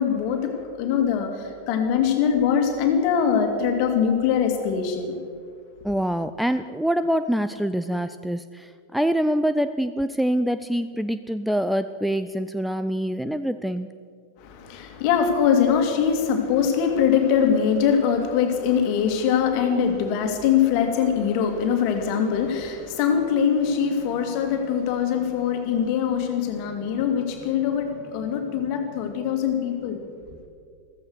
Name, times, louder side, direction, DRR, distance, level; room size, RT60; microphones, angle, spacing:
voice 1, 0.0-5.1 14.4-30.0, left 7 dB, 45° left, 5 dB, 2.3 m, -22 dB
voice 2, 5.8-13.9, equal, ahead, 11 dB, 0.4 m, -25 dB
15.0 x 14.5 x 6.4 m, 2.2 s
figure-of-eight pair, 90°, 0 cm